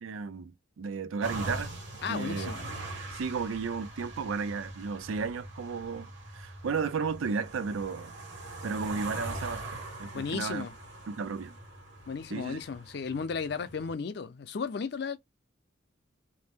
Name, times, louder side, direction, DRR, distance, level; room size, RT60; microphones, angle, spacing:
voice 1, 0.0-1.8 2.1-2.5 3.1-8.1 8.6-9.6 10.0-10.7 11.1-11.6 12.3-12.6, right 5 dB, 85° right, 0.4 m, -34 dB
sound 1, 1.2-13.9, right 2 dB, 70° right, 1.3 m, -42 dB
voice 2, 2.0-2.6 10.1-10.7 12.1-15.2, left 5 dB, 55° left, 0.4 m, -34 dB
2.7 x 2.0 x 3.4 m
head